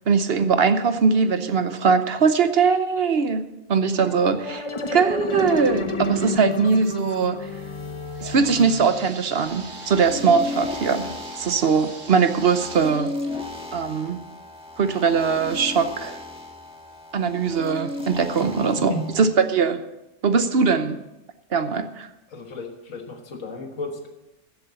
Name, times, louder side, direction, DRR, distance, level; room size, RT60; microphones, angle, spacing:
voice 1, 0.1-7.5 8.2-13.1 13.7-14.2 14.8-16.2 17.1-19.8 20.2-21.0 21.5-22.1, right 5 dB, 55° right, 9 dB, 1.0 m, -21 dB
sound 1, 4.0-9.3, left 4 dB, 25° left, 0.9 m, -31 dB
sound 2, 7.8-15.4 15.9-16.0 16.7-16.8 17.2-17.3, right 3 dB, 75° right, 1.9 m, -44 dB
sound 3, 9.4-19.3, left 2 dB, 5° right, 1.5 m, -35 dB
voice 2, 18.6-19.1 22.3-24.1, left 2 dB, 75° left, 3 dB, 1.8 m, -34 dB
14.0 x 7.8 x 6.9 m, 0.95 s
omnidirectional pair, 1.3 m